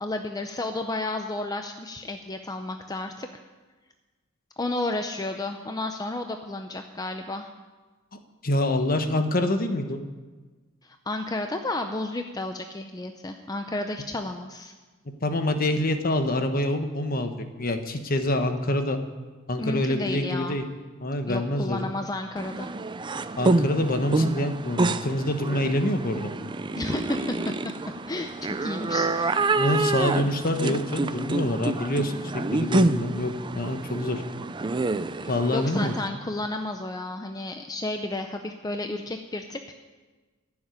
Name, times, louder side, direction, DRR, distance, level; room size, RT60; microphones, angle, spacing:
voice 1, 0.0-3.3 4.6-7.5 10.8-14.7 19.6-20.6 21.3-22.7 26.8-27.5 28.1-29.4 35.2-39.7, left 2 dB, 20° left, 5 dB, 0.6 m, -32 dB
voice 2, 8.4-10.0 15.2-17.3 17.6-19.0 19.5-20.6 21.0-21.9 23.4-26.3 29.6-34.2 35.3-35.9, left 1 dB, 45° left, 7 dB, 1.3 m, -26 dB
sound 1, 22.4-36.1, right 3 dB, 25° right, 0.5 m, -27 dB
15.5 x 7.3 x 9.8 m, 1.3 s
head